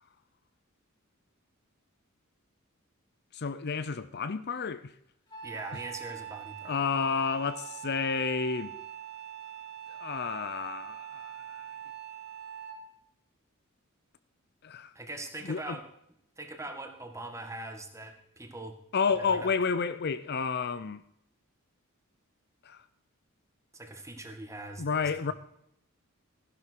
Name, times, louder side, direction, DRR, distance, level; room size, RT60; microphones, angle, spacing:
voice 1, 3.3-5.0 5.7-5.8 6.7-8.7 9.9-11.7 14.6-14.9 15.4-15.8 18.9-21.0 22.6-22.8 24.8-25.3, left 5 dB, 50° left, 0.6 m, -31 dB
Wind instrument woodwind instrument, 5.3-12.9, right 10 dB, 20° left, 3.0 m, -43 dB
voice 2, 5.4-6.8 14.9-15.8 16.4-18.8 19.4-19.5 23.7-25.1, right 2 dB, 15° right, 1.8 m, -42 dB
15.5 x 11.0 x 4.6 m
head